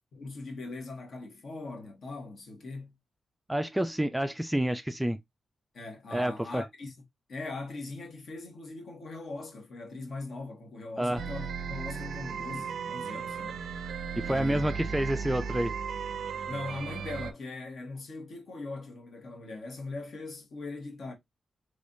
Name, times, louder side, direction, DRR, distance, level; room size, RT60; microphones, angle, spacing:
voice 1, 0.1-2.9 5.7-6.9 7.3-13.6 14.2-14.6 16.5-21.1, left 3 dB, 60° left, 1.4 m, -40 dB
voice 2, 3.5-5.2 6.1-6.6 11.0-11.2 14.2-15.7, right 1 dB, 5° right, 0.3 m, -28 dB
sound 1, 11.2-17.3, right 6 dB, 80° right, 0.4 m, -36 dB
3.3 x 3.3 x 2.6 m
wide cardioid pair, 135°, 0 cm